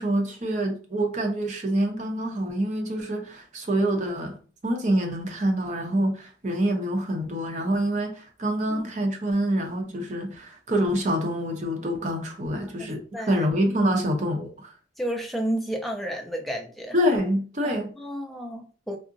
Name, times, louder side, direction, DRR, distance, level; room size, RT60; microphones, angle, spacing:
voice 1, 0.0-4.4 4.6-13.0 13.3-14.7 16.9-17.9, equal, 40° right, 0.6 m, -26 dB
voice 2, 12.8-13.5 15.0-16.9 17.6-19.0, right 1 dB, ahead, 0.4 m, -32 dB
3.5 x 2.0 x 2.6 m
head